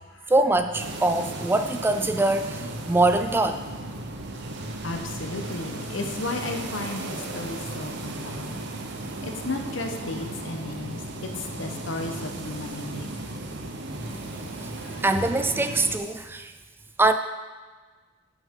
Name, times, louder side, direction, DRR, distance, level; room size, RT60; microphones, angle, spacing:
voice 1, 0.3-3.6 14.6-14.7 15.0-16.5 17.0-17.1, right 2 dB, 10° right, 8 dB, 0.3 m, -23 dB
sound 1, 0.7-16.0, right 2 dB, 65° right, 0.8 m, -35 dB
voice 2, 4.8-8.6 9.2-13.4 14.8-15.0, left 2 dB, 80° left, 4 dB, 1.0 m, -34 dB
11.0 x 6.0 x 3.7 m, 1.4 s
head